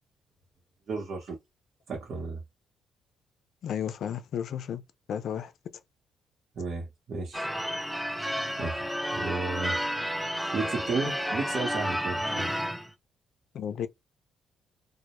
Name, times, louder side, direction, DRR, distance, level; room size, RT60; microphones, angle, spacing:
voice 1, 0.9-1.4 1.9-2.4 6.5-7.5 8.6-9.8 10.5-12.5, right 3 dB, 55° right, 0.9 m, -33 dB
voice 2, 3.6-4.8 5.1-5.5 13.5-13.9, left 9 dB, 70° left, 0.3 m, -33 dB
Church bell / Car / Alarm, 7.3-12.9, equal, 5° right, 0.4 m, -31 dB
2.1 x 2.0 x 3.0 m
cardioid pair, 90°, 0 cm